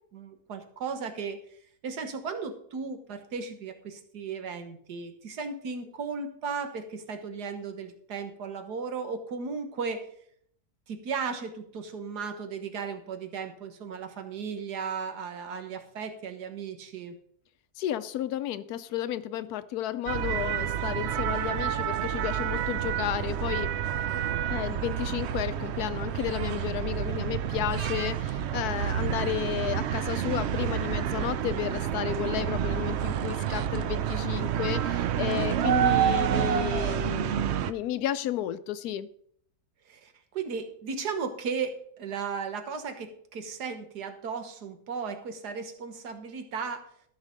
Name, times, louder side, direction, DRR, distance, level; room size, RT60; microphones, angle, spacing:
voice 1, 0.1-1.4 1.8-10.1 10.9-17.1 39.8-46.8, right 5 dB, 90° right, 7 dB, 1.7 m, -35 dB
voice 2, 17.8-23.7 24.5-39.1, left 12 dB, 75° left, 14 dB, 1.1 m, -32 dB
sound 1, 20.1-37.7, right 10 dB, 70° right, 0.6 m, -29 dB
13.5 x 6.1 x 5.1 m, 0.65 s
omnidirectional pair, 1.7 m